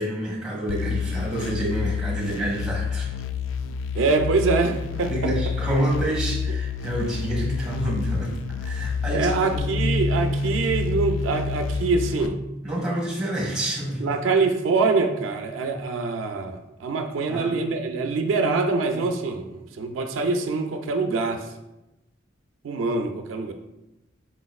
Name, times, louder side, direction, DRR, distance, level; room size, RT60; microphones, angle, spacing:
voice 1, 0.0-3.1 5.1-9.6 12.6-14.1 17.3-17.5, right 1 dB, 5° right, -2 dB, 1.3 m, -28 dB
sound 1, 0.7-12.3, left 6 dB, 75° left, 0.3 m, -29 dB
voice 2, 3.9-5.1 9.1-12.4 14.0-21.5 22.6-23.5, right 4 dB, 80° right, 6 dB, 0.4 m, -24 dB
Bass guitar, 9.6-15.8, right 1 dB, 20° right, 0.7 m, -32 dB
4.3 x 4.1 x 2.3 m, 0.96 s
head